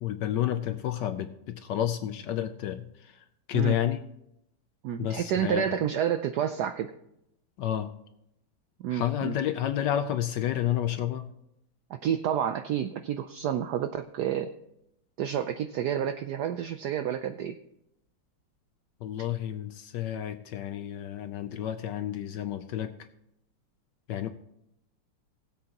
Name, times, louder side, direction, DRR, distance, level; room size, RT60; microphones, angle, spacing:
voice 1, 0.0-4.0 5.0-5.8 7.6-7.9 8.9-11.3 19.0-22.9 24.1-24.3, left 11 dB, 75° left, 9 dB, 1.1 m, -30 dB
voice 2, 4.8-6.9 8.8-9.4 11.9-14.5 15.2-17.6, right 9 dB, 80° right, 10 dB, 0.9 m, -29 dB
19.5 x 7.8 x 2.9 m, 0.80 s
omnidirectional pair, 2.3 m